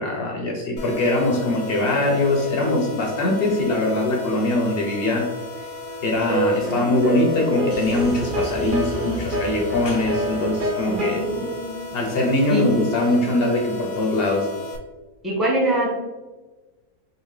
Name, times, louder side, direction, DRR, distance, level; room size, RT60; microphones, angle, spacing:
voice 1, 0.0-5.3 6.0-11.4 11.9-14.5, left 2 dB, 60° left, 0 dB, 0.6 m, -22 dB
sound 1, 0.8-14.8, left 2 dB, 90° left, 1.2 m, -35 dB
sound 2, 6.3-11.2, equal, 55° right, 0.5 m, -26 dB
sound 3, 7.7-12.1, right 1 dB, 70° right, 1.6 m, -37 dB
voice 2, 10.9-11.7 12.5-12.6 15.2-15.9, right 1 dB, ahead, -5 dB, 0.7 m, -24 dB
3.9 x 2.4 x 3.1 m, 1.2 s
omnidirectional pair, 1.6 m